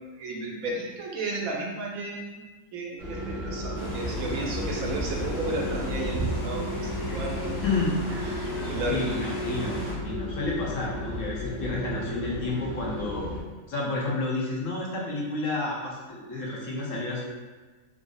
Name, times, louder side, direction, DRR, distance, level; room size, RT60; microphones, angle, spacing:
voice 1, 0.0-2.4 2.7-7.6 8.2-9.0, right 2 dB, 80° right, -1 dB, 1.1 m, -34 dB
sound 1, 3.0-13.4, left 1 dB, 55° right, 0.9 m, -33 dB
sound 2, 3.7-9.9, right 1 dB, 85° left, 1.6 m, -35 dB
voice 2, 7.6-8.0 8.3-8.4 8.9-13.3 13.7-17.2, left 2 dB, 70° left, -4 dB, 1.1 m, -30 dB
3.6 x 2.0 x 3.8 m, 1.3 s
omnidirectional pair, 1.4 m